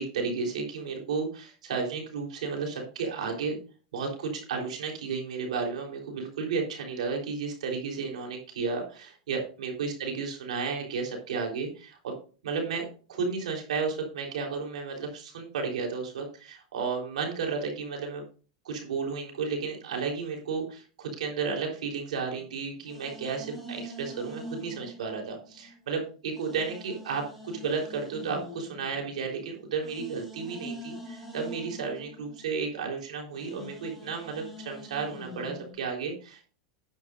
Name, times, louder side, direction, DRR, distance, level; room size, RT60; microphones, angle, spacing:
voice 1, 0.0-3.6 3.9-12.2 12.4-18.2 18.6-36.5, right 5 dB, 85° right, 1 dB, 3.7 m, -33 dB
sound 1, 22.3-25.9 26.3-35.7, equal, ahead, 4.2 m, -44 dB
11.5 x 9.9 x 2.5 m, 0.38 s
supercardioid pair, 135°, 4 cm